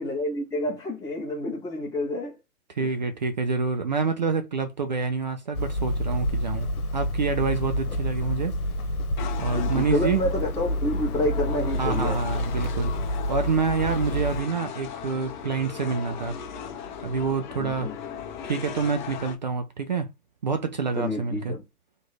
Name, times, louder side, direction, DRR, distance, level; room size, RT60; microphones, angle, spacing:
voice 1, 0.0-2.4 2.8-2.9 9.5-12.4 17.6-17.9 20.9-21.6, left 2 dB, 10° left, 1.3 m, -29 dB
voice 2, 2.8-8.5 9.4-10.2 11.8-12.9 13.3-16.3 17.0-17.9 18.4-20.1 20.4-21.5, right 5 dB, 30° right, 0.4 m, -27 dB
Hammer, 5.5-14.4, equal, 70° left, 1.2 m, -28 dB
sound 1, 9.2-19.4, left 7 dB, 30° left, 0.8 m, -37 dB
3.4 x 3.1 x 3.9 m
figure-of-eight pair, 130°, 45 cm